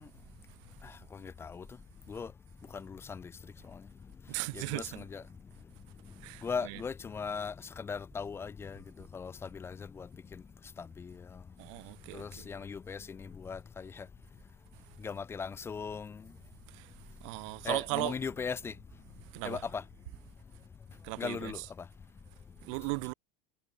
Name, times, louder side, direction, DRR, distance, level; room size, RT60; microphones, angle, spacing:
voice 1, 1.1-1.6 2.1-2.3 2.7-3.3 4.5-5.2 6.4-8.8 9.1-10.1 10.8-11.2 12.1-14.1 15.0-16.2 17.6-18.7 19.4-19.8 21.2-21.6, left 5 dB, 15° left, 0.9 m, -38 dB
voice 2, 4.3-5.0 6.2-6.8 11.6-12.4 16.7-16.9 17.2-18.2 19.3-19.6 21.0-21.7 22.6-23.1, right 31 dB, 65° right, 0.8 m, -37 dB
cardioid pair, 175°, 17 cm